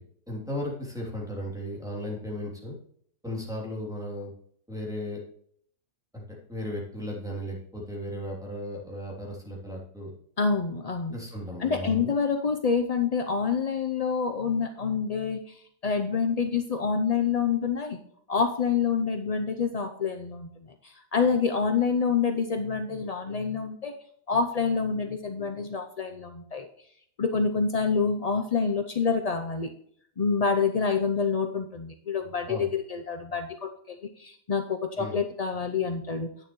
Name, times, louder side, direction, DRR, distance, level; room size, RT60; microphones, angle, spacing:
voice 1, 0.3-2.7 3.2-4.3 4.7-5.2 6.1-6.2 6.5-10.1 11.1-12.1 32.5-32.7 35.0-35.1, left 1 dB, ahead, -3 dB, 3.0 m, -35 dB
voice 2, 10.4-11.1 11.6-18.0 18.3-20.5 20.8-23.9 24.3-26.7 27.2-29.7 30.2-36.3, left 5 dB, 55° left, 5 dB, 0.4 m, -27 dB
10.5 x 8.8 x 3.1 m, 0.64 s
omnidirectional pair, 1.6 m